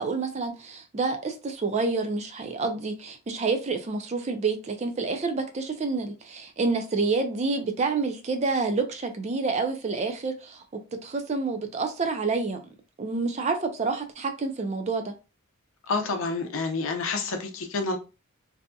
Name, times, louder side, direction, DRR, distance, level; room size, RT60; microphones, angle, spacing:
voice 1, 0.0-12.6 13.0-15.1, right 4 dB, 30° right, 0.4 m, -28 dB
voice 2, 15.9-18.0, left 3 dB, 70° left, 0.5 m, -28 dB
2.7 x 2.6 x 2.2 m
head